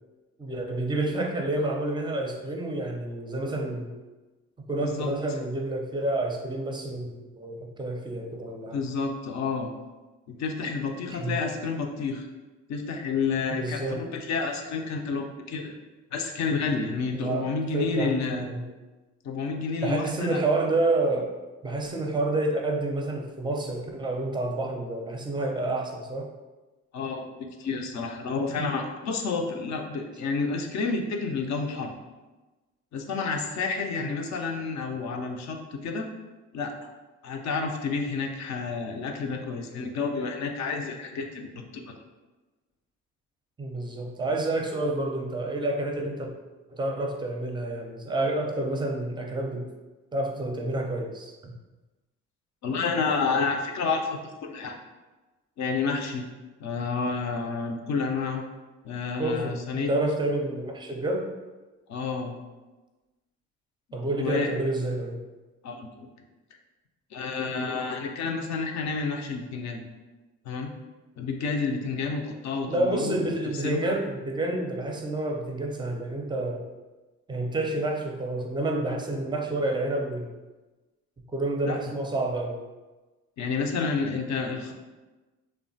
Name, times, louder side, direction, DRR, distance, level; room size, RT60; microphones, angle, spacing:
voice 1, 0.4-3.9 4.7-8.8 11.1-11.4 13.5-14.0 17.1-18.6 19.8-21.3 21.6-26.3 34.0-34.1 43.6-46.3 46.7-49.7 50.1-51.5 59.2-59.6 59.9-61.3 63.9-65.2 72.7-76.7 77.3-80.3 81.3-82.6, right 2 dB, 15° right, 2 dB, 0.5 m, -29 dB
voice 2, 4.8-5.1 8.7-9.7 10.3-12.3 12.7-15.8 16.1-18.5 19.2-20.4 26.9-27.3 27.6-31.9 32.9-36.1 36.5-36.7 37.2-42.0 52.6-54.8 55.6-56.3 56.6-58.4 58.8-59.9 61.9-62.3 64.1-64.5 65.6-66.1 67.1-69.8 70.5-70.7 71.2-73.2 73.6-73.8 81.6-81.8 83.4-84.7, left 4 dB, 55° left, 3 dB, 0.5 m, -30 dB
2.9 x 2.1 x 2.6 m, 1.2 s
supercardioid pair, 60°, 33 cm